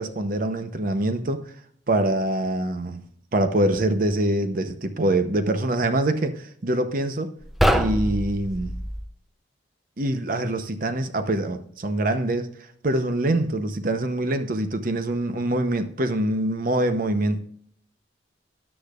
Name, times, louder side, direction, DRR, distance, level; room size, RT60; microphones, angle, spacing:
voice 1, 0.0-1.4 1.9-3.0 3.3-7.3 7.7-8.7 10.0-12.5 12.8-17.4, right 1 dB, 50° right, 0.8 m, -24 dB
sound 1, 7.4-9.1, equal, ahead, 0.6 m, -24 dB
13.5 x 9.9 x 2.5 m
head